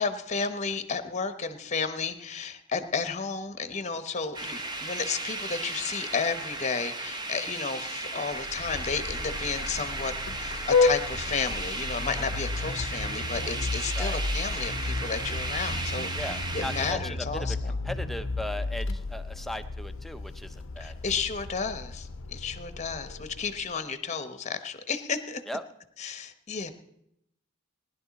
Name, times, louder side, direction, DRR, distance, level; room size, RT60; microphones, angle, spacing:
voice 1, 0.0-17.7 20.8-25.4 26.0-26.7, left 5 dB, 35° left, 10 dB, 0.9 m, -32 dB
sound 1, 4.3-16.9, right 2 dB, 20° right, 0.9 m, -35 dB
Vehicle horn car horn honking, 8.3-23.7, left 3 dB, 65° left, 0.6 m, -32 dB
voice 2, 16.2-21.0 25.5-25.6, left 1 dB, ahead, 9 dB, 0.6 m, -38 dB
19.0 x 11.0 x 4.1 m, 0.78 s
head